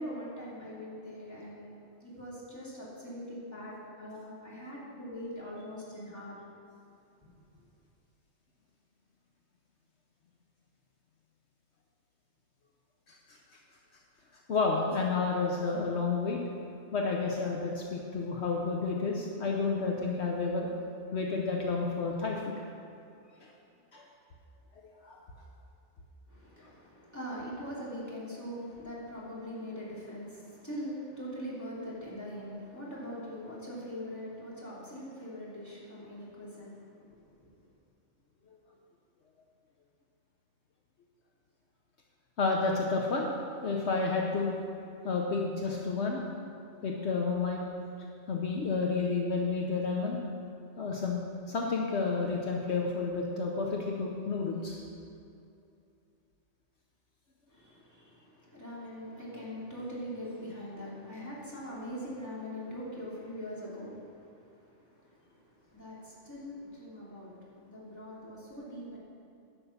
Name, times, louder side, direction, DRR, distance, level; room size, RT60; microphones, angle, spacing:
voice 1, 0.0-6.4 7.2-7.3 26.3-37.3 57.5-69.0, equal, 15° left, -8 dB, 2.9 m, -42 dB
voice 2, 14.5-16.4 16.9-20.7 21.1-22.5 23.9-24.0 24.8-25.2 42.4-43.3 43.6-44.5 45.0-46.2 46.8-47.6 48.3-50.2 50.8-51.2 51.5-54.8, left 4 dB, 70° left, 0 dB, 1.2 m, -30 dB
11.0 x 6.1 x 7.1 m, 2.6 s
omnidirectional pair, 1.2 m